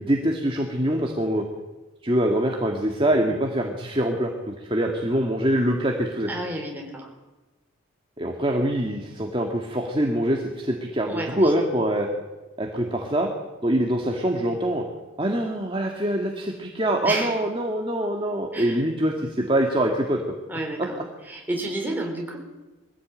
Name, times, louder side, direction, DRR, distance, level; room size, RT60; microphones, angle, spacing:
voice 1, 0.0-1.4 2.0-6.3 8.2-12.1 12.6-13.3 13.6-14.8 15.2-20.2, right 1 dB, 25° right, 1 dB, 1.9 m, -24 dB
voice 2, 6.3-7.1 11.0-11.7 17.0-17.4 18.5-18.8 20.5-21.0 21.2-22.4, right 1 dB, 10° right, 0 dB, 4.2 m, -31 dB
22.0 x 16.0 x 9.0 m, 1.2 s
head